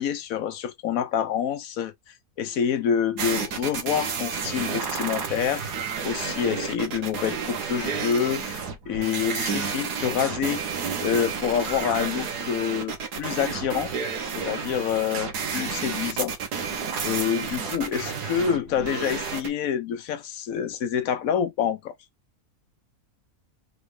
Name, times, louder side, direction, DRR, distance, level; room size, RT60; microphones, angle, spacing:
voice 1, 0.0-1.9 2.4-5.7 6.0-10.6 11.0-13.9 14.2-16.3 17.0-21.9, left 8 dB, 65° left, 1.1 m, -27 dB
sound 1, 3.2-19.5, right 6 dB, 85° right, 1.7 m, -31 dB
3.9 x 3.5 x 3.3 m
omnidirectional pair, 1.7 m